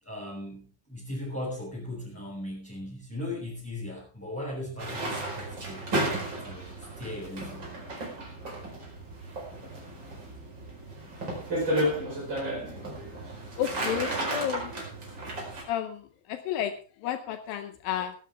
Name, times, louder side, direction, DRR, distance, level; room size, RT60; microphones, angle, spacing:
voice 1, 0.0-5.8 6.4-7.7, left 1 dB, 5° left, -6 dB, 5.6 m, -38 dB
sound 1, 4.8-15.6, right 1 dB, 30° right, 5.1 m, -33 dB
voice 2, 13.6-14.7 15.7-18.2, left 10 dB, 80° left, 9 dB, 2.6 m, -32 dB
18.0 x 12.0 x 3.5 m, 0.36 s
omnidirectional pair, 4.2 m